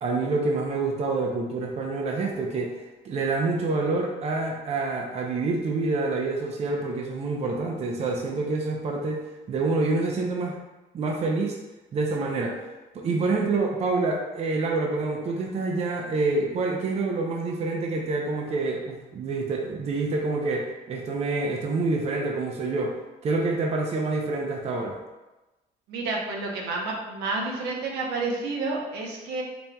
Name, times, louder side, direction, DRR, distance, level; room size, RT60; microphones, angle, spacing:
voice 1, 0.0-2.8 3.0-10.6 10.9-11.6 11.9-12.6 12.9-23.0 23.2-25.0, right 3 dB, 40° right, 0 dB, 0.5 m, -27 dB
voice 2, 25.9-29.4, right 3 dB, 85° right, -1 dB, 0.8 m, -30 dB
4.2 x 3.3 x 2.2 m, 1.1 s
cardioid pair, 110°, 17 cm